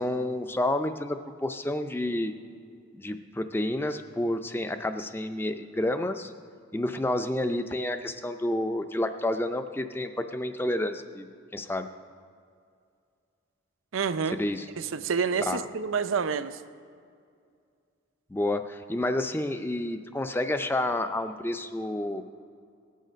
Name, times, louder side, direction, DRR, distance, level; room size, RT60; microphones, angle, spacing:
voice 1, 0.0-2.3 2.9-6.3 6.7-11.3 11.5-11.9 14.3-14.7 15.5-15.6 18.3-22.2, left 1 dB, 10° left, 9 dB, 0.4 m, -29 dB
voice 2, 13.9-14.4 14.8-16.6, right 6 dB, 80° right, 12 dB, 0.5 m, -28 dB
18.0 x 6.5 x 5.1 m, 2.3 s
head